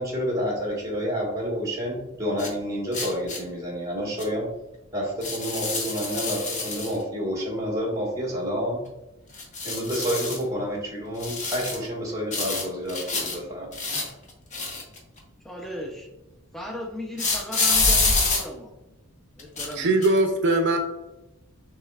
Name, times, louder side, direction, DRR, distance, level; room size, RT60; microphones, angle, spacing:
voice 1, 0.0-4.5 4.9-8.8 9.6-13.7, equal, 15° right, -3 dB, 1.6 m, -29 dB
sound 1, 2.4-2.5 2.9-3.4 4.2-4.3 5.2-7.0 9.3-10.4 11.2-11.9 12.3-13.4 13.7-15.2 17.2-18.4 19.4-19.7 20.0-20.2, left 3 dB, 35° left, 0.9 m, -26 dB
voice 2, 15.4-16.1 16.5-18.7 19.4-19.9, left 1 dB, ahead, 0 dB, 0.5 m, -36 dB
voice 3, 19.8-20.8, right 2 dB, 55° right, 4 dB, 0.6 m, -21 dB
6.6 x 3.2 x 2.4 m, 0.97 s
head